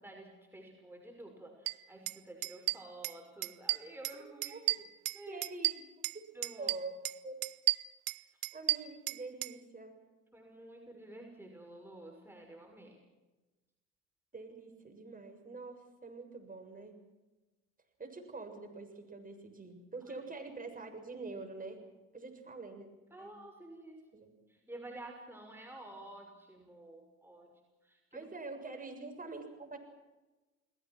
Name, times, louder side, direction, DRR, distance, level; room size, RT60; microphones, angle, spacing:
voice 1, 0.0-4.6 5.1-5.4 6.3-6.8 10.3-13.0 20.1-20.2 23.1-24.0 24.5-27.5 27.8-28.3, right 1 dB, 5° right, 1 dB, 6.1 m, -50 dB
sound 1, 1.7-1.8 2.1-2.2 2.4-3.2 3.4-4.2 4.4-6.2 6.4-7.2 7.4-9.5, right 19 dB, 55° right, 0.8 m, -33 dB
voice 2, 4.2-4.8 5.3-5.9 6.6-7.4 8.5-10.0 14.3-17.0 18.0-21.8 22.1-22.9 23.2-23.3 24.1-24.3 28.1-29.8, right 3 dB, 20° right, 4 dB, 7.0 m, -45 dB
30.0 x 20.0 x 6.3 m, 1.1 s
hypercardioid pair, 65°, 40 cm